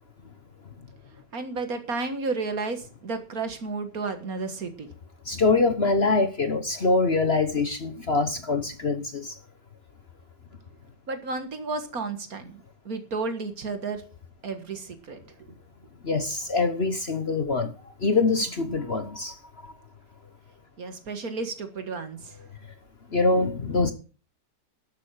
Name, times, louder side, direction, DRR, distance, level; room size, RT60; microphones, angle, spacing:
voice 1, 1.3-4.9 11.1-14.0 14.4-15.3 20.8-22.4, right 3 dB, 55° right, 8 dB, 2.1 m, -32 dB
voice 2, 5.3-9.3 16.0-17.7 18.0-19.3 23.1-23.9, left 3 dB, 40° left, 9 dB, 1.1 m, -24 dB
12.5 x 8.4 x 6.5 m, 0.35 s
omnidirectional pair, 1.8 m